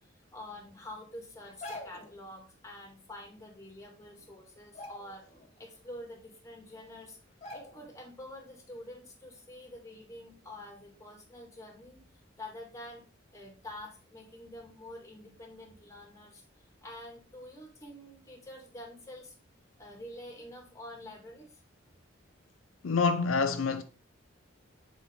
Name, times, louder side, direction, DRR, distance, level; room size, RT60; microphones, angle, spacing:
voice 1, 0.3-5.2 5.6-7.2 7.5-13.0 13.3-19.4 19.8-21.6, left 1 dB, 15° left, 1.8 m, -47 dB
sound 1, 1.4-2.2 3.6-3.7 4.0-4.3 4.6-5.5 5.9-6.0 6.7-6.8 7.4-8.0 8.4-8.6, left 1 dB, 35° left, 1.6 m, -45 dB
voice 2, 22.8-23.8, left 4 dB, 85° left, 0.5 m, -27 dB
7.1 x 4.2 x 3.5 m
head